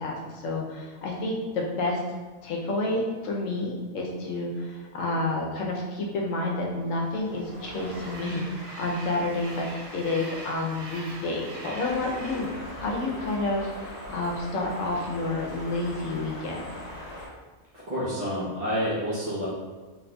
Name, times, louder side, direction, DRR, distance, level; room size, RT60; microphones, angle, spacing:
voice 1, 0.0-2.0 2.4-16.8, left 2 dB, 80° left, -1 dB, 1.0 m, -30 dB
Train, 6.4-13.9, right 1 dB, 70° right, 1.2 m, -43 dB
sound 1, 11.8-17.3, left 1 dB, 65° left, 1.1 m, -40 dB
voice 2, 17.9-19.4, equal, 35° right, -10 dB, 0.7 m, -28 dB
4.0 x 2.9 x 2.2 m, 1.3 s
omnidirectional pair, 1.3 m